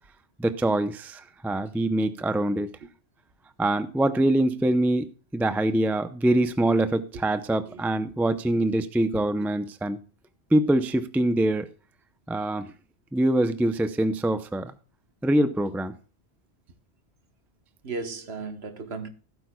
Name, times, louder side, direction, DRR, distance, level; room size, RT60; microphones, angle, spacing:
voice 1, 0.4-2.7 3.6-10.0 10.5-11.7 12.3-12.7 13.1-14.8 15.2-16.0, right 1 dB, 5° right, 0.3 m, -24 dB
voice 2, 17.8-19.1, right 4 dB, 65° right, 1.4 m, -35 dB
16.0 x 9.1 x 2.3 m
omnidirectional pair, 1.2 m